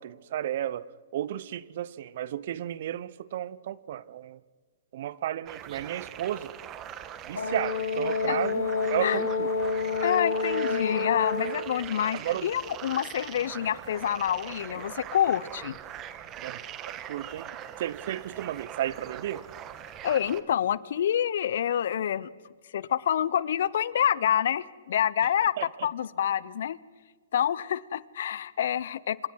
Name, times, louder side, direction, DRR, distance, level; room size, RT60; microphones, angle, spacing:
voice 1, 0.0-4.4 4.9-6.5 7.3-9.5 12.1-12.5 16.4-16.6 16.8-17.5 17.8-19.4 25.6-25.9, right 12 dB, 55° right, 20 dB, 0.9 m, -33 dB
sound 1, 5.5-20.4, right 10 dB, 30° right, 1.6 m, -41 dB
Brass instrument, 7.3-11.6, left 4 dB, 85° left, 3.5 m, -28 dB
voice 2, 10.0-15.8 20.0-22.3 22.7-26.8 27.3-29.3, left 10 dB, 65° left, 20 dB, 0.8 m, -27 dB
28.0 x 26.0 x 4.7 m, 1.5 s
hypercardioid pair, 120°, 0 cm